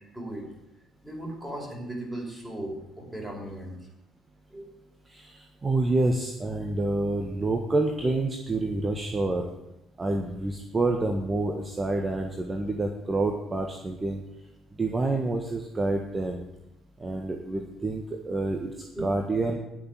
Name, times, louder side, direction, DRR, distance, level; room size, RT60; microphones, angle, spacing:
voice 1, 0.1-0.5 1.0-3.8 4.5-4.7 18.9-19.1, right 1 dB, 5° right, -1 dB, 5.4 m, -36 dB
voice 2, 5.1-9.5 10.0-14.2 14.8-16.4 17.0-18.7 19.0-19.6, right 2 dB, 25° right, 3 dB, 1.5 m, -28 dB
11.0 x 6.9 x 9.0 m, 0.90 s
figure-of-eight pair, 50°, 0 cm